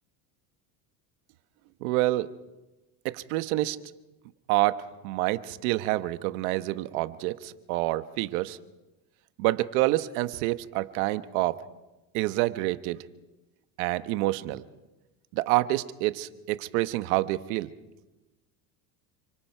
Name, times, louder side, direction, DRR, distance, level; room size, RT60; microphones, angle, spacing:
voice 1, 1.8-2.3 3.0-3.8 4.5-8.6 9.4-11.6 12.1-13.0 13.8-14.6 15.3-17.7, right 17 dB, 75° right, 12 dB, 1.2 m, -27 dB
29.5 x 25.5 x 4.6 m, 1.1 s
supercardioid pair, 125°, 43 cm